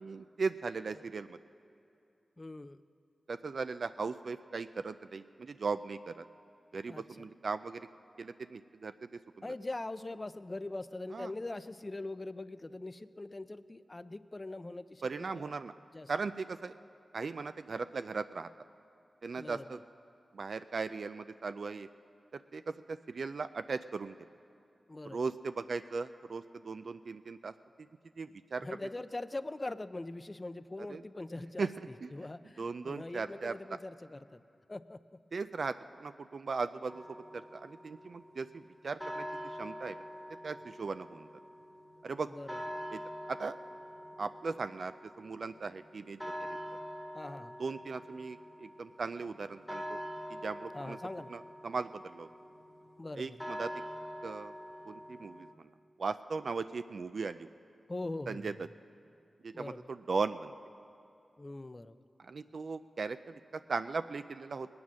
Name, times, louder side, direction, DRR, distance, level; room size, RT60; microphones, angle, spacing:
voice 1, 0.0-1.4 3.3-6.2 6.7-7.9 8.2-9.1 11.1-11.3 15.0-15.7 16.1-16.7 17.1-18.5 19.2-19.8 20.3-21.9 22.3-24.2 25.1-27.5 28.2-28.7 30.9-31.0 31.6-31.7 32.0-32.1 32.6-33.8 35.3-37.0 37.3-40.0 40.4-41.3 42.0-42.3 42.9-43.0 43.3-43.6 44.2-46.3 47.6-50.0 50.3-51.0 51.3-52.3 53.2-53.7 54.2-54.5 54.9-55.7 56.0-57.5 58.3-58.5 59.4-60.5 62.2-64.7, right 4 dB, 65° right, 11 dB, 0.3 m, -38 dB
voice 2, 2.4-2.8 6.9-7.0 9.4-15.1 15.3-15.5 15.9-16.1 19.4-19.8 24.9-25.3 28.6-31.7 32.1-34.4 34.7-35.2 42.3-42.6 47.1-47.6 50.7-51.3 53.0-53.4 57.9-58.5 59.5-59.9 61.4-62.0, left 2 dB, 30° left, 13 dB, 0.4 m, -42 dB
sound 1, 36.9-55.5, equal, 5° left, 1.2 m, -45 dB
19.5 x 9.6 x 6.2 m, 2.7 s
wide cardioid pair, 85°, 0 cm